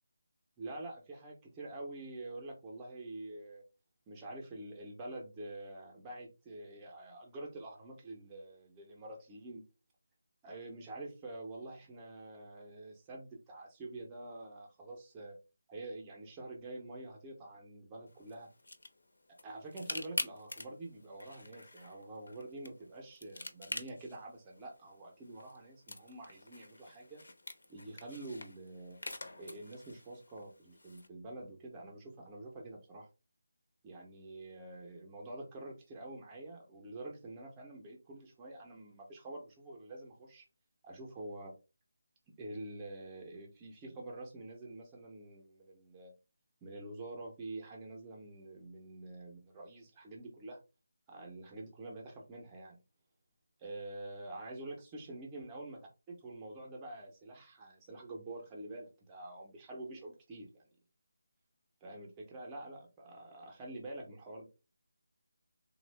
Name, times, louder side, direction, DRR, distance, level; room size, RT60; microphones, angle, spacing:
voice 1, 0.6-3.6 4.1-9.6 10.4-15.4 15.7-18.5 19.4-27.2 27.7-29.0 29.4-33.1 33.8-40.4 40.8-41.5 42.4-46.1 46.6-50.6 51.1-52.8 53.6-55.8 56.1-60.7 61.8-64.5, right 2 dB, 10° right, 0 dB, 0.5 m, -47 dB
sound 1, 18.1-31.1, left 2 dB, 85° left, 0.6 m, -47 dB
3.3 x 2.1 x 3.1 m, 0.29 s
figure-of-eight pair, 180°, 0 cm